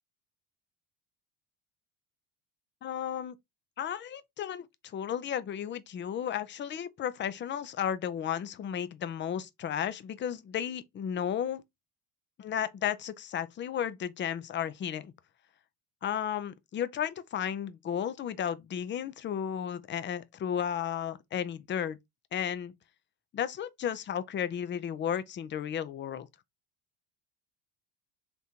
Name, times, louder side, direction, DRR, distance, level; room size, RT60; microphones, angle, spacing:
voice 1, 2.8-3.3 3.8-11.6 12.4-15.1 16.0-22.0 22.3-22.7 23.3-26.3, left 9 dB, 25° left, 0.4 m, -33 dB
3.7 x 2.6 x 4.3 m
supercardioid pair, 105°, 49 cm